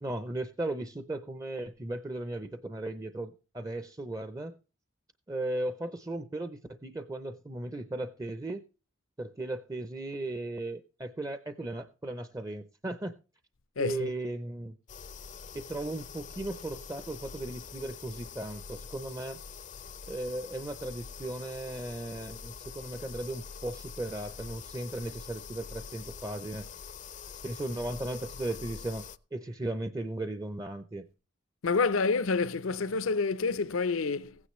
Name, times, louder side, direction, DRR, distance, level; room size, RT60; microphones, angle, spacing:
voice 1, 0.0-4.6 5.3-8.6 9.2-13.1 13.8-14.8 15.5-19.4 20.1-26.7 27.4-31.1, right 2 dB, 15° right, 0.5 m, -36 dB
voice 2, 13.8-14.1 31.6-34.4, left 4 dB, 80° left, 0.6 m, -28 dB
sound 1, 14.9-29.2, left 6 dB, 35° left, 0.5 m, -45 dB
15.5 x 9.7 x 3.1 m
head